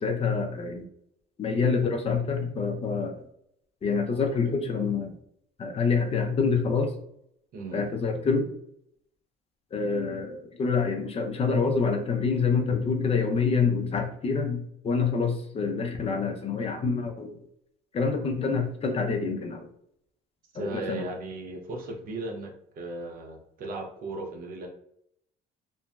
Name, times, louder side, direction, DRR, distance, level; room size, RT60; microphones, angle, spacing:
voice 1, 0.0-0.8 1.4-3.2 3.8-5.1 5.6-6.9 7.7-8.5 9.7-17.4 17.9-19.7 20.5-21.1, left 5 dB, 35° left, 4 dB, 0.5 m, -26 dB
voice 2, 4.1-4.5 7.5-7.8 20.5-24.7, right 2 dB, 60° right, 3 dB, 0.6 m, -37 dB
3.0 x 2.5 x 2.2 m, 0.73 s
cardioid pair, 110°, 17 cm